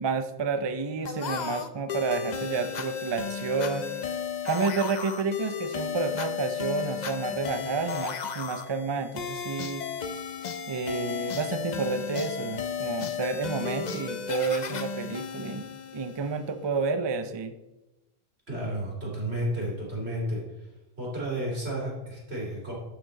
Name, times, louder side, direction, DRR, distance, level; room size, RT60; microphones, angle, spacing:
voice 1, 0.0-4.0 4.4-9.8 10.7-17.5, right 4 dB, 35° right, 9 dB, 0.5 m, -30 dB
sound 1, 1.1-16.5, left 7 dB, 50° left, 0.7 m, -34 dB
voice 2, 18.5-20.4 21.0-22.7, right 1 dB, 85° right, -5 dB, 3.6 m, -32 dB
11.5 x 6.0 x 3.9 m, 1.0 s
omnidirectional pair, 1.1 m